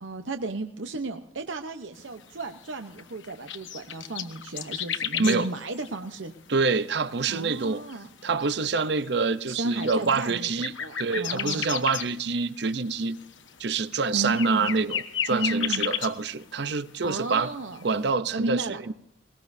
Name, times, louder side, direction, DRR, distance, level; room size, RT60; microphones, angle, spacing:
voice 1, 0.0-6.3 7.3-8.1 9.5-11.7 14.1-14.7 15.3-15.9 17.0-17.9 18.3-18.8, right 2 dB, 80° right, 0.9 m, -33 dB
sound 1, 2.0-16.7 16.9-17.8, left 9 dB, 80° left, 1.2 m, -35 dB
voice 2, 5.2-5.5 6.5-7.8 8.2-10.7 11.0-13.2 13.6-17.5 17.8-18.9, right 4 dB, 60° right, 0.6 m, -26 dB
21.0 x 19.5 x 2.7 m
head